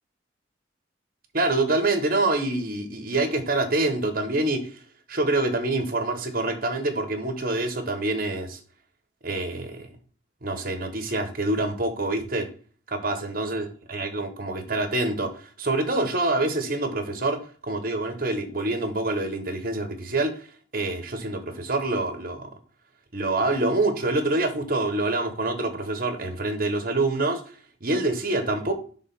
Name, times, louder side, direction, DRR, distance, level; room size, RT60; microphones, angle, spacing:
voice 1, 1.3-4.8 5.1-8.6 9.2-9.9 10.4-12.5 12.9-20.5 20.7-22.5 23.1-27.4 27.8-28.7, right 2 dB, 45° right, 1.1 m, -26 dB
6.4 x 3.6 x 5.6 m
head